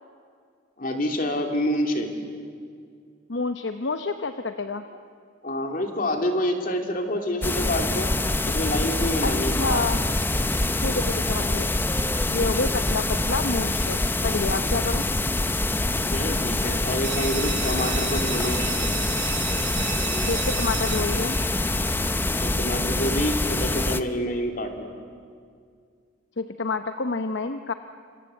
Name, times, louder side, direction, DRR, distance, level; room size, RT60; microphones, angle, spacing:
voice 1, 0.8-2.1 5.4-8.1 8.5-9.5 16.0-18.6 22.4-24.9, left 1 dB, 45° left, 3 dB, 3.0 m, -27 dB
voice 2, 3.3-4.8 9.2-10.1 10.8-11.7 12.3-15.0 20.3-21.4 26.4-27.7, left 3 dB, 65° left, 8 dB, 0.8 m, -28 dB
sound 1, 7.4-24.0, left 2 dB, 10° left, 0.7 m, -25 dB
AC bel, 17.0-22.5, right 11 dB, 65° right, 1.7 m, -35 dB
27.5 x 26.0 x 8.3 m, 2.2 s
head